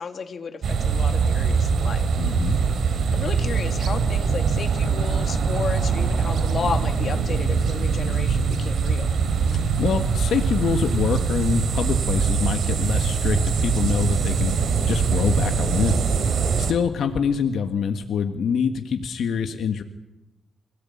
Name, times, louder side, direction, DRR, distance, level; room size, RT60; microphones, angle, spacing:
voice 1, 0.0-2.0 3.1-9.1, left 5 dB, 50° left, 5 dB, 2.4 m, -32 dB
sound 1, 0.6-16.7, right 5 dB, 70° right, 3.1 m, -22 dB
voice 2, 2.2-2.6 9.5-16.1 16.6-19.8, left 7 dB, 80° left, 6 dB, 1.6 m, -25 dB
26.5 x 18.0 x 8.7 m, 0.98 s
wide cardioid pair, 150°, 0 cm